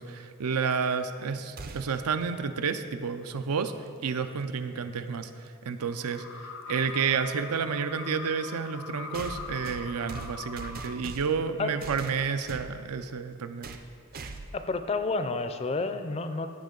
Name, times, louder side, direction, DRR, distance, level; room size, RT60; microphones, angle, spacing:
voice 1, 0.0-3.7 4.0-5.3 5.6-13.7, right 6 dB, 90° right, 10 dB, 0.5 m, -30 dB
sound 1, 1.6-2.1 4.2-4.3 5.5-5.6 9.1-11.5 11.8-12.7 13.6-13.9 14.1-14.6, right 3 dB, 40° right, 0.5 m, -41 dB
sound 2, 5.8-11.0, left 5 dB, 85° left, 0.9 m, -42 dB
voice 2, 14.5-16.5, left 3 dB, 25° left, 9 dB, 0.4 m, -30 dB
14.5 x 5.1 x 3.8 m, 2.3 s
head